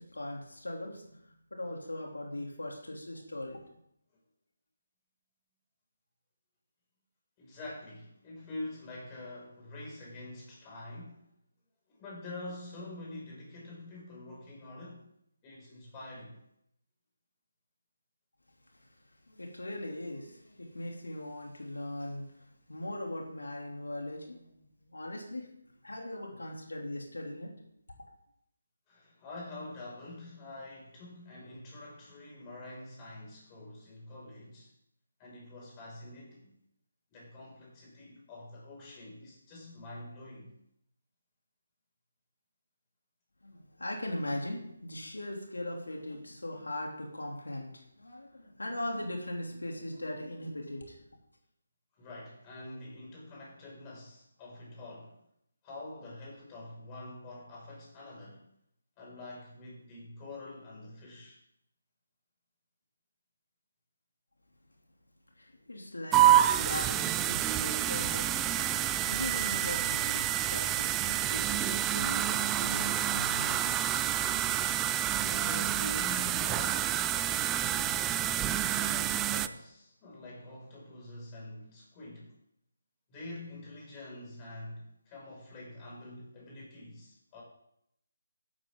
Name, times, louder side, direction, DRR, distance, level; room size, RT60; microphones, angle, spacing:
voice 1, 0.0-3.6 19.3-24.6 24.9-25.5 25.8-27.5 43.4-51.0 65.4-73.8, left 1 dB, 85° left, 0 dB, 3.1 m, -40 dB
voice 2, 7.4-11.2 11.9-15.0 15.4-16.4 28.9-34.7 35.2-36.5 37.1-40.5 52.0-55.2 55.6-58.4 59.0-61.4 68.8-69.1 75.1-78.1 78.6-82.3 83.1-87.4, left 2 dB, 20° left, -4 dB, 6.0 m, -46 dB
sound 1, 66.1-79.5, right 12 dB, 15° right, 0.4 m, -28 dB
13.5 x 12.0 x 3.9 m, 0.75 s
figure-of-eight pair, 155°, 0 cm